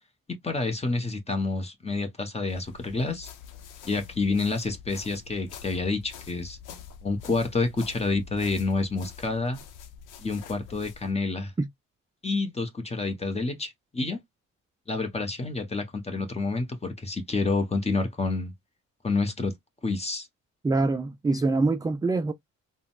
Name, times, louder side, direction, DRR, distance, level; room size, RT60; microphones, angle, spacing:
voice 1, 0.4-3.3 3.8-6.6 7.0-9.6 10.2-11.5 12.2-14.2 14.9-18.5 19.0-19.5 19.8-20.3, left 3 dB, 20° left, 1.1 m, -28 dB
sound 1, 2.5-11.1, left 7 dB, 90° left, 0.7 m, -46 dB
voice 2, 20.6-22.3, right 3 dB, 15° right, 0.3 m, -24 dB
3.8 x 2.2 x 2.3 m
cardioid pair, 90°, 30 cm